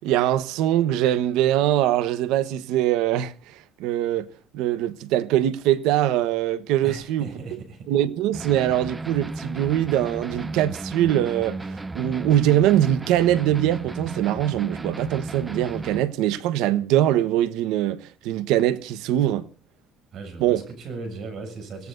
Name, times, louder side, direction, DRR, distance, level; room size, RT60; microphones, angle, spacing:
voice 1, 0.0-4.3 4.5-7.6 7.9-19.5 20.4-20.6, right 12 dB, 85° right, 1.1 m, -22 dB
voice 2, 6.8-7.9 20.1-21.9, right 4 dB, 50° right, 7.3 m, -37 dB
sound 1, 8.3-16.0, right 2 dB, 15° right, 0.8 m, -34 dB
25.0 x 18.0 x 2.6 m
cardioid pair, 140°, 0 cm